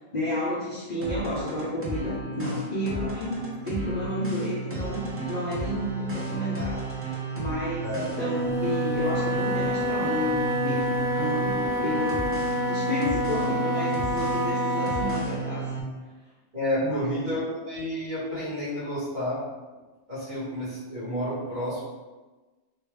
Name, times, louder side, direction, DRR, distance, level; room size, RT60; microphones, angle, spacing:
voice 1, 0.1-10.3 10.6-15.7 16.8-17.2, left 1 dB, 45° left, -7 dB, 0.6 m, -31 dB
sound 1, 1.0-15.8, right 3 dB, 25° right, 0.3 m, -33 dB
Wind instrument woodwind instrument, 8.1-15.3, equal, 70° right, 0.8 m, -28 dB
voice 2, 16.5-19.4 20.1-21.8, left 1 dB, 40° right, -11 dB, 1.8 m, -30 dB
3.2 x 2.2 x 3.3 m, 1.2 s
omnidirectional pair, 1.2 m